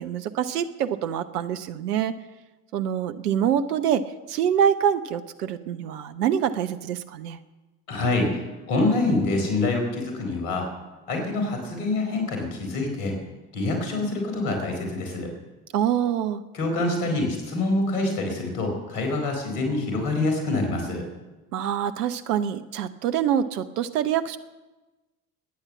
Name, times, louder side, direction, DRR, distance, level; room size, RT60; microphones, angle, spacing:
voice 1, 0.0-2.2 2.7-7.4 15.7-16.4 21.5-24.4, right 9 dB, 75° right, 11 dB, 1.0 m, -25 dB
voice 2, 7.9-10.7 11.1-13.1 13.5-15.3 16.5-21.0, left 2 dB, 70° left, 3 dB, 4.4 m, -26 dB
20.0 x 9.8 x 7.3 m, 1.2 s
figure-of-eight pair, 55°, 47 cm